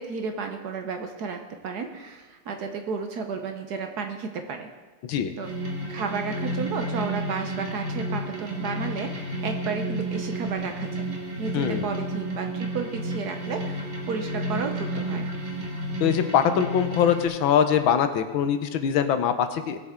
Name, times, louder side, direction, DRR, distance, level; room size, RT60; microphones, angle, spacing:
voice 1, 0.0-4.7 5.4-5.5 5.9-11.1 11.4-15.3, right 5 dB, 60° right, 5 dB, 1.2 m, -32 dB
sound 1, 5.4-17.3, right 1 dB, 25° right, 1.3 m, -31 dB
voice 2, 11.5-11.9 16.0-19.8, left 8 dB, 80° left, 9 dB, 1.6 m, -23 dB
19.5 x 7.4 x 3.7 m, 1.2 s
omnidirectional pair, 2.2 m